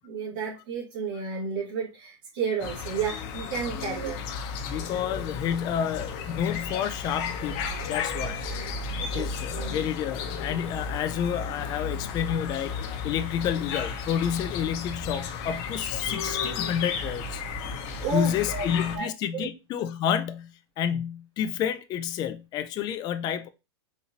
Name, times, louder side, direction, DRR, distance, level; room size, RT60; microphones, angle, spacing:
voice 1, 0.0-4.2 9.1-9.3 9.5-9.9 18.0-18.7 18.9-19.1 19.3-19.5, right 5 dB, 50° right, 1.7 m, -32 dB
sound 1, 2.6-19.0, left 5 dB, 45° left, 0.8 m, -33 dB
voice 2, 4.6-8.4 9.0-17.4 17.9-23.5, left 9 dB, 30° left, 0.3 m, -30 dB
4.2 x 2.5 x 2.8 m
hypercardioid pair, 125°, 15 cm